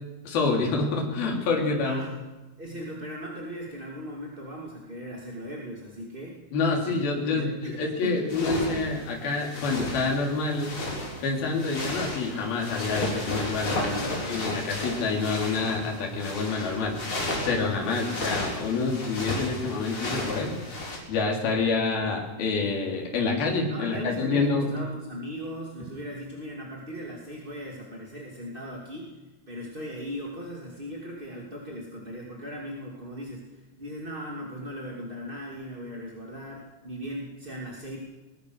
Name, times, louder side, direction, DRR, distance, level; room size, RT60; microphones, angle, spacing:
voice 1, 0.2-2.0 6.5-10.7 11.2-13.9 14.3-17.0 17.4-20.6 21.1-24.7, left 3 dB, 65° left, 0 dB, 5.2 m, -27 dB
voice 2, 1.7-2.1 2.6-6.4 6.8-7.0 7.2-8.3 13.7-14.5 17.8-18.1 23.7-29.1 29.5-38.0, equal, 15° right, -2 dB, 2.0 m, -38 dB
sound 1, 8.3-21.0, left 2 dB, 35° left, 4.7 m, -33 dB
21.5 x 20.5 x 6.6 m, 1.2 s
omnidirectional pair, 4.6 m